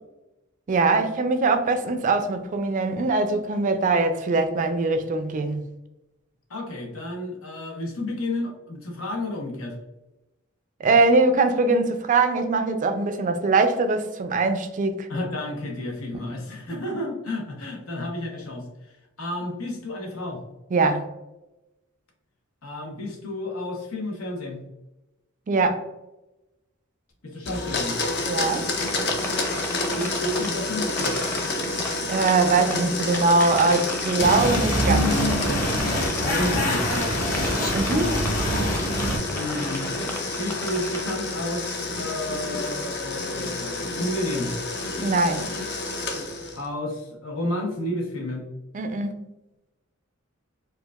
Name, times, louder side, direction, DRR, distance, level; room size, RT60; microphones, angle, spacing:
voice 1, 0.7-5.6 10.8-15.1 20.7-21.0 25.5-25.8 28.3-28.7 32.0-35.1 37.7-38.1 45.0-45.5 48.7-49.2, right 3 dB, 40° right, 0.4 m, -22 dB
voice 2, 6.5-9.8 15.1-20.4 22.6-24.6 27.2-28.0 30.0-31.2 36.2-37.1 39.3-39.9 40.4-44.5 46.6-48.5, left 1 dB, 90° left, 0.9 m, -31 dB
Domestic sounds home sounds, 27.4-46.7, left 2 dB, 55° left, 0.6 m, -29 dB
sound 1, 28.8-41.1, equal, 10° left, 0.6 m, -35 dB
sound 2, 34.2-39.2, equal, 40° left, 1.4 m, -25 dB
4.5 x 2.4 x 2.3 m
head